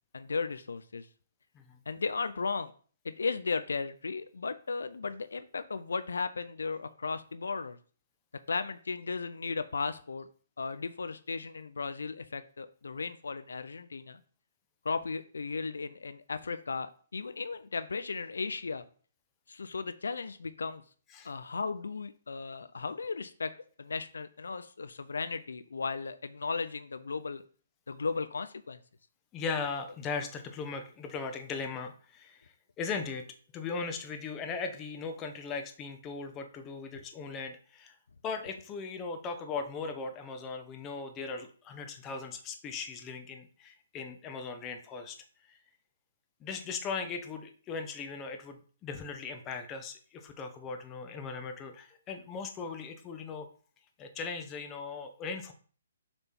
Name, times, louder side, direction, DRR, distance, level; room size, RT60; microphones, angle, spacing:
voice 1, 0.1-1.1 1.9-2.7 3.0-7.8 8.5-10.3 10.6-14.2 14.8-18.8 19.5-20.8 21.2-23.5 23.8-27.4 27.9-28.8, left 4 dB, 75° left, 12 dB, 0.5 m, -35 dB
voice 2, 29.3-37.9 38.2-45.2 45.5-45.6 46.4-53.5 54.0-55.5, left 5 dB, 20° left, 6 dB, 1.0 m, -38 dB
7.0 x 3.4 x 4.4 m, 0.43 s
figure-of-eight pair, 135°, 0 cm